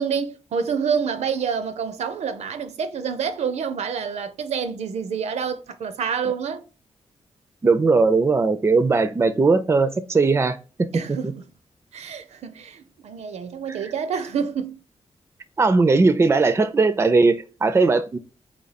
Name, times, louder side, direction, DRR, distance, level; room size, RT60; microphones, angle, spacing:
voice 1, 0.0-6.6 10.9-11.4 11.9-14.8, right 6 dB, 85° right, 0.5 m, -27 dB
voice 2, 7.6-11.3 13.7-13.9 15.6-18.2, right 3 dB, 25° right, 0.4 m, -19 dB
4.1 x 3.1 x 4.0 m
wide cardioid pair, 115°, 11 cm